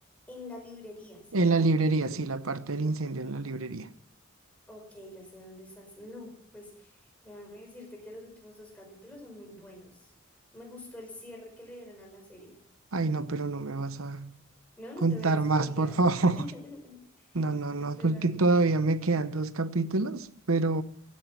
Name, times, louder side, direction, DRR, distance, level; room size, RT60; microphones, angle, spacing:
voice 1, 0.3-1.7 4.7-10.1 10.5-12.6 14.8-15.9 16.4-17.4 17.8-18.6, left 1 dB, 5° left, 5.0 m, -46 dB
voice 2, 1.3-3.9 12.9-14.3 15.0-16.5 17.3-20.8, right 3 dB, 80° right, 0.9 m, -27 dB
16.0 x 12.0 x 5.9 m
head